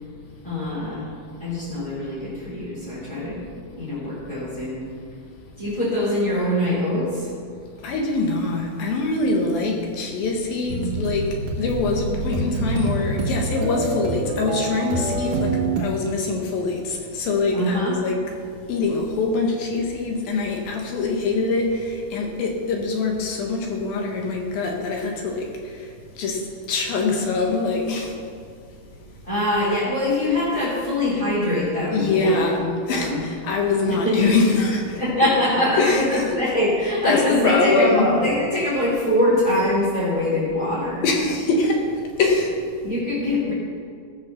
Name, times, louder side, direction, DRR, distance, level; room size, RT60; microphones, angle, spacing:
voice 1, 0.4-1.1 1.4-4.8 5.6-7.3 17.5-17.9 29.2-33.2 33.9-34.2 34.9-41.0 42.8-43.5, left 1 dB, 10° left, -12 dB, 3.3 m, -23 dB
voice 2, 7.8-18.2 18.7-25.9 26.2-28.2 31.9-35.0 35.8-36.4 37.0-38.1 41.0-41.9 42.2-42.6, left 3 dB, 70° left, 1 dB, 3.1 m, -24 dB
sound 1, 10.7-15.8, right 3 dB, 60° right, 2.8 m, -26 dB
16.0 x 6.6 x 7.1 m, 2.2 s
omnidirectional pair, 4.5 m